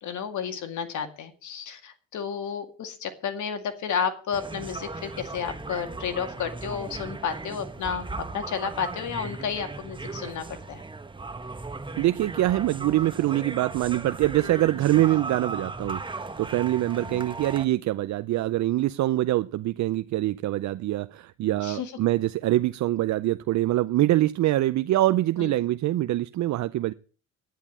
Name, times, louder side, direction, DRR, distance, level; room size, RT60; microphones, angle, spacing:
voice 1, 0.0-10.8 17.0-17.2 21.6-21.9 25.4-25.6, left 7 dB, 75° left, 7 dB, 2.2 m, -32 dB
sound 1, 4.3-17.7, right 3 dB, 15° right, 1.1 m, -37 dB
voice 2, 12.0-26.9, right 15 dB, 65° right, 14 dB, 0.5 m, -24 dB
11.0 x 9.9 x 7.2 m, 0.40 s
cardioid pair, 90°, 30 cm